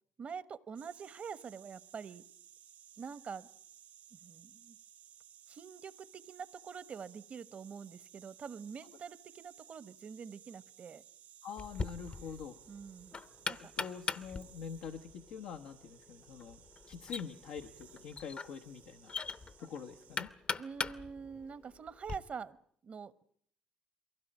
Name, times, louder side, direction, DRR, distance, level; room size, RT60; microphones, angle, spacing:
voice 1, 0.2-2.2 3.0-3.5 4.1-4.8 5.5-11.0 12.7-13.2 13.5-13.7 20.5-22.6 22.8-23.2, right 6 dB, 55° right, 17 dB, 1.1 m, -46 dB
sound 1, 0.7-20.2, right 10 dB, 90° right, 2.1 m, -59 dB
voice 2, 11.4-12.6 13.6-16.6 16.9-19.1 19.6-20.3, left 6 dB, 85° left, 4 dB, 1.0 m, -45 dB
Knock, 11.6-22.2, left 4 dB, 45° left, 0.9 m, -42 dB
23.0 x 16.5 x 8.8 m, 0.63 s
supercardioid pair, 60°, 3 cm